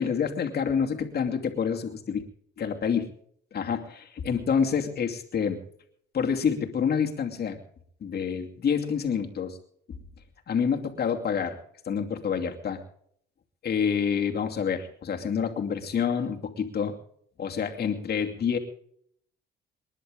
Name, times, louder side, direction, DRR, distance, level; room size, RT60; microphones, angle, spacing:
voice 1, 0.0-2.2 2.6-3.1 3.5-5.6 6.1-7.6 8.0-9.6 10.5-11.6 11.9-12.8 13.6-17.0 17.4-18.6, left 7 dB, 55° left, 2 dB, 2.6 m, -27 dB
28.0 x 11.0 x 3.7 m, 0.65 s
cardioid pair, 90°, 20 cm